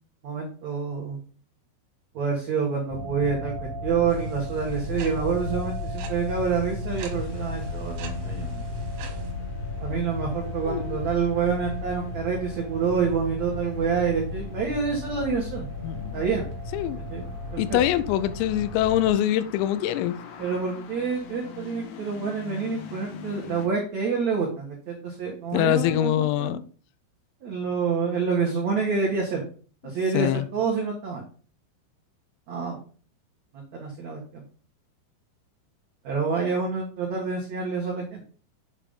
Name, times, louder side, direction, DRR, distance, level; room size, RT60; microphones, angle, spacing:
voice 1, 0.2-1.2 2.1-3.5 3.8-8.6 9.8-15.7 16.1-16.4 17.1-17.2 17.5-17.8 20.4-26.6 27.4-29.4 29.8-31.2 32.5-32.8 33.5-34.4 36.0-38.2, right 5 dB, 85° right, 1.5 m, -27 dB
sound 1, 2.9-19.1, left 2 dB, 5° right, 1.4 m, -34 dB
sound 2, 4.1-9.3, right 7 dB, 70° right, 3.1 m, -46 dB
sound 3, 7.1-23.7, left 7 dB, 70° left, 3.0 m, -47 dB
voice 2, 10.7-11.0 15.8-16.2 16.7-17.0 17.6-20.2 25.5-26.6 30.1-30.5, left 12 dB, 90° left, 3.3 m, -24 dB
8.4 x 7.0 x 3.7 m
omnidirectional pair, 5.9 m